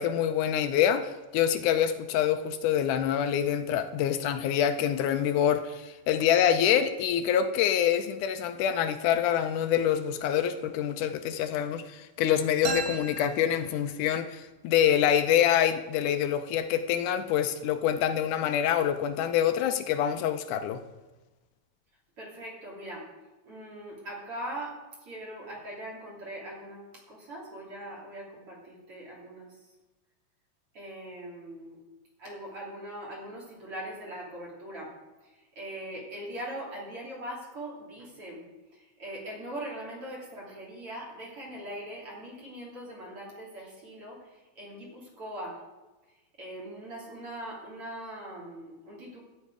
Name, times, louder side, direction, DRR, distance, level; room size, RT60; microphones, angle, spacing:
voice 1, 0.0-20.8, left 9 dB, 80° left, 9 dB, 2.2 m, -26 dB
sound 1, 12.6-14.3, right 4 dB, 85° right, 3.2 m, -36 dB
voice 2, 22.2-23.1 23.4-29.7 30.7-31.8 32.2-34.9 35.2-38.5 38.7-45.6 46.4-49.2, right 1 dB, 45° right, -2 dB, 3.9 m, -41 dB
13.0 x 9.5 x 4.8 m, 1.1 s
omnidirectional pair, 3.6 m